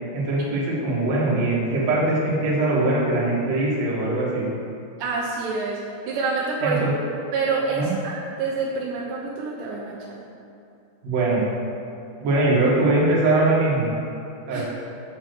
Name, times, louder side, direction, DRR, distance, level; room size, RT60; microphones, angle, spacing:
voice 1, 0.1-4.4 6.6-6.9 7.8-7.9 11.0-11.4 12.2-13.9 14.5-14.6, right 2 dB, 50° right, -6 dB, 2.4 m, -21 dB
voice 2, 5.0-5.8 6.1-6.9 7.3-10.1 14.5-14.6, right 4 dB, 75° right, -4 dB, 3.0 m, -27 dB
8.7 x 5.5 x 6.8 m, 2.7 s
omnidirectional pair, 5.3 m